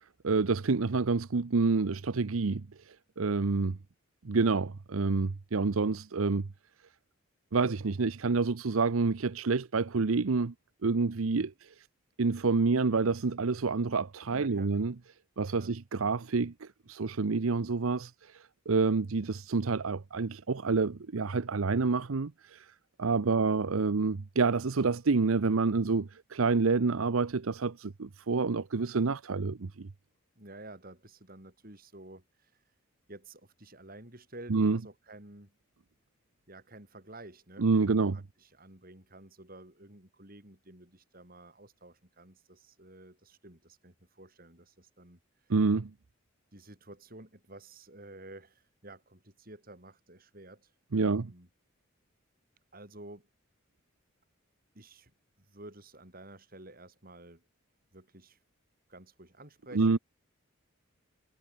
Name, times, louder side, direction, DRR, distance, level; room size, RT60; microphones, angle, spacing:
voice 1, 0.2-3.8 4.2-6.5 7.5-10.5 10.8-11.7 12.2-14.9 15.4-22.7 23.0-29.9 34.5-34.8 37.6-38.2 45.5-45.9 50.9-51.3 59.7-60.0, right 4 dB, 80° right, 0.7 m, -28 dB
voice 2, 14.3-14.8 15.6-15.8 23.2-23.5 30.4-32.5 33.1-35.6 36.5-45.2 46.5-51.5 52.7-53.3 54.7-55.1 55.4-57.4 57.9-58.4 58.9-60.0, right 1 dB, 45° right, 5.5 m, -51 dB
head